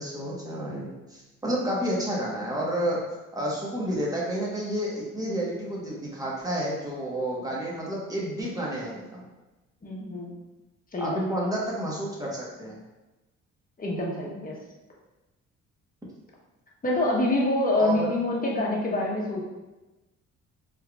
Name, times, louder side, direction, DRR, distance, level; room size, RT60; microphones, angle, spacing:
voice 1, 0.0-3.0 3.3-9.2 11.0-12.8 17.8-18.1, right 1 dB, 10° right, -5 dB, 1.3 m, -30 dB
voice 2, 9.8-10.3 10.9-11.2 13.8-14.5 16.8-19.4, left 2 dB, 30° left, -3 dB, 1.1 m, -26 dB
4.3 x 3.3 x 2.4 m, 1.1 s
cardioid pair, 90°, 30 cm